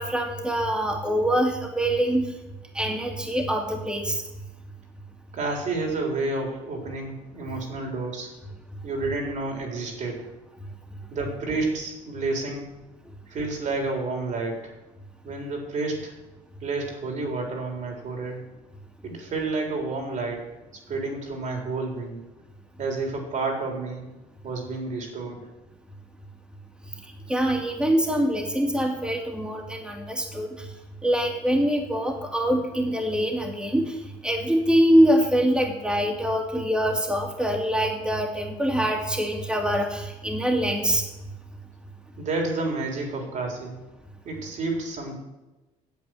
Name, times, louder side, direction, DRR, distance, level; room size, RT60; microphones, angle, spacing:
voice 1, 0.0-2.3 2.7-4.2 27.3-30.5 31.0-33.9 34.2-41.0, equal, 5° right, 1 dB, 2.6 m, -24 dB
voice 2, 5.3-8.3 8.8-10.3 11.1-12.7 13.3-14.8 15.2-16.1 16.6-18.4 19.0-20.6 20.9-22.2 22.8-24.0 24.4-25.5 42.2-43.8 44.2-45.2, right 3 dB, 55° right, 2 dB, 3.8 m, -30 dB
9.4 x 8.0 x 7.7 m, 1.1 s
supercardioid pair, 90°, 15 cm